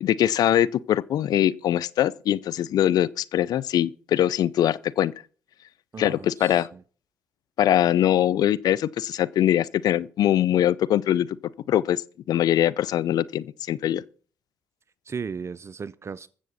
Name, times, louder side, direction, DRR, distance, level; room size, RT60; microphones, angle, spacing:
voice 1, 0.0-5.1 6.0-6.7 7.6-11.3 11.7-12.0 12.3-14.0, left 11 dB, 70° left, 0.6 m, -22 dB
voice 2, 5.9-6.8 15.1-16.3, right 5 dB, 40° right, 0.5 m, -36 dB
21.5 x 7.4 x 4.1 m
supercardioid pair, 55°, 7 cm